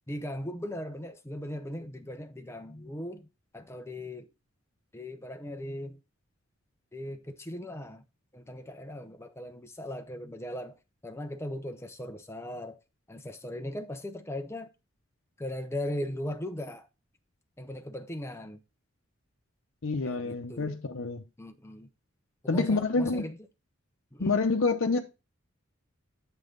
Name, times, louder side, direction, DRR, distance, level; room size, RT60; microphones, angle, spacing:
voice 1, 0.1-3.3 3.5-4.3 4.9-6.0 6.9-8.0 8.3-12.8 13.1-14.7 15.4-16.9 17.6-18.6 20.0-20.8 21.4-21.9 22.4-23.4 24.1-24.3, left 1 dB, 15° left, 0.8 m, -38 dB
voice 2, 19.8-21.2 22.5-23.3 24.2-25.0, left 3 dB, 80° left, 0.8 m, -27 dB
8.1 x 5.5 x 3.8 m
head